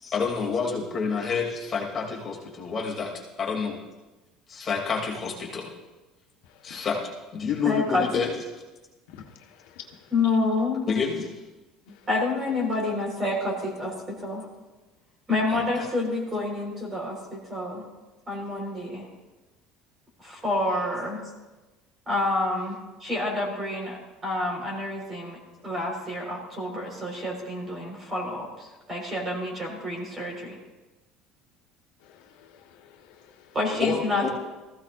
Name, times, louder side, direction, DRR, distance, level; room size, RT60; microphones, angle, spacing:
voice 1, 0.0-3.1 3.4-3.8 4.5-5.7 6.6-7.0 7.3-8.3 10.9-11.2 15.5-15.6 33.8-34.3, left 5 dB, 25° left, -2 dB, 2.7 m, -28 dB
voice 2, 7.6-8.0 10.1-10.9 12.1-14.5 15.3-17.9 18.3-19.1 20.2-21.2 22.1-30.6 33.5-34.3, left 2 dB, 20° right, -1 dB, 4.5 m, -28 dB
voice 3, 9.1-10.1 11.9-12.0 32.0-33.5, left 8 dB, 85° left, 2 dB, 1.4 m, -50 dB
19.5 x 15.5 x 2.6 m, 1.1 s
cardioid pair, 145°, 0 cm